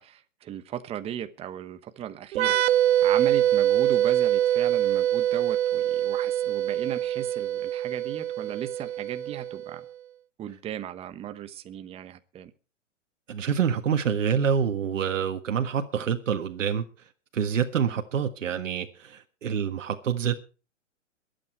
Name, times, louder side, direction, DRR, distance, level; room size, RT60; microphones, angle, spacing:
voice 1, 0.0-2.6 3.0-9.8 10.4-12.5, right 10 dB, 15° right, 1.0 m, -36 dB
sound 1, 2.3-9.8, right 11 dB, 60° right, 0.7 m, -24 dB
voice 2, 13.3-16.8 17.3-20.3, right 7 dB, 80° right, 1.7 m, -27 dB
22.5 x 8.9 x 4.5 m
hypercardioid pair, 140°, 37 cm